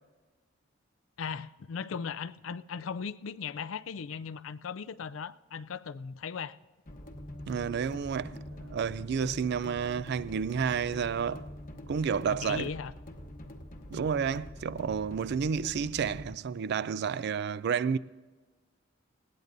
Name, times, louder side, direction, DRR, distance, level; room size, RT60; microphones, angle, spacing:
voice 1, 1.2-6.6 12.2-12.9, left 6 dB, 80° left, 0.4 m, -38 dB
sound 1, 6.9-16.4, left 1 dB, 45° left, 1.0 m, -45 dB
voice 2, 7.5-11.5 11.9-12.7 13.9-18.0, right 6 dB, 55° right, 0.3 m, -31 dB
20.0 x 17.0 x 2.6 m
head